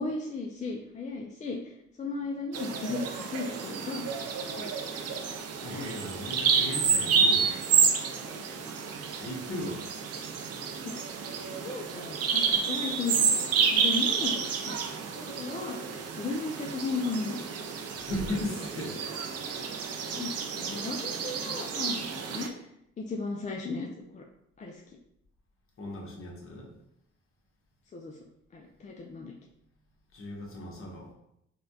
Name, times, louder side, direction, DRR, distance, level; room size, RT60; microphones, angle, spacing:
voice 1, 0.0-1.6 2.0-4.1 4.6-4.7 8.3-8.8 10.8-11.0 11.5-13.3 13.7-14.4 14.7-14.8 15.1-15.8 16.2-17.4 20.1-20.3 20.6-22.5 23.0-23.9 24.1-24.2 24.6-24.8 27.9-28.2 28.5-29.3, left 3 dB, 25° left, 0 dB, 0.4 m, -35 dB
Bird vocalization bird call bird song, 2.5-22.5, right 6 dB, 55° right, 0.5 m, -29 dB
voice 2, 5.6-7.5 9.2-9.8 17.9-19.0 25.8-26.7 30.1-31.1, left 1 dB, 45° left, -1 dB, 1.1 m, -36 dB
4.1 x 2.3 x 2.7 m, 0.78 s
cardioid pair, 90°, 30 cm